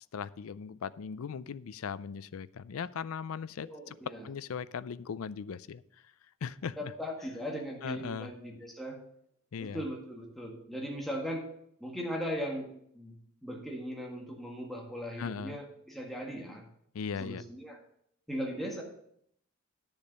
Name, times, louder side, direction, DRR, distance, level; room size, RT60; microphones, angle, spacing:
voice 1, 0.1-4.0 4.2-5.8 6.4-6.8 7.8-8.3 9.5-9.8 15.2-15.6 16.9-17.4, left 6 dB, 85° left, 17 dB, 0.4 m, -38 dB
voice 2, 3.6-4.3 6.8-9.0 9.6-11.5 11.8-16.7 17.2-17.8 18.3-18.8, equal, ahead, -2 dB, 1.8 m, -38 dB
10.0 x 7.0 x 5.3 m, 0.69 s
head